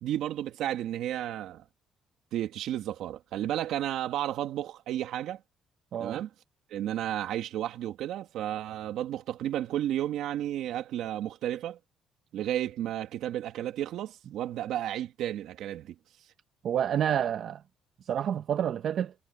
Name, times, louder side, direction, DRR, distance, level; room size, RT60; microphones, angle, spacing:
voice 1, 0.0-1.6 2.3-5.4 6.0-6.3 6.7-11.8 12.3-16.0, right 12 dB, 80° right, 2.0 m, -32 dB
voice 2, 16.6-17.6 18.0-19.1, right 9 dB, 60° right, 0.8 m, -29 dB
cardioid pair, 115°, 0 cm